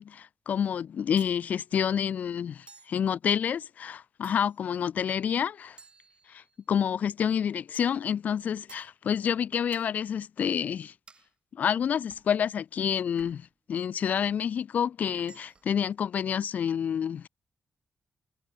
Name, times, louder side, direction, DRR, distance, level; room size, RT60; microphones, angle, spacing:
voice 1, 0.0-5.8 6.3-6.4 6.7-10.9 11.5-17.3, left 8 dB, 65° left, 0.3 m, -28 dB
sound 1, 1.2-1.4 2.7-3.0 4.2-4.7 5.8-6.7 7.7-8.0 8.7-8.9 9.7-9.9 11.1-11.3 12.1-12.3 13.2-13.5 14.2-14.4 15.2-15.8, right 4 dB, 35° right, 1.9 m, -54 dB
wide cardioid pair, 115°, 3 cm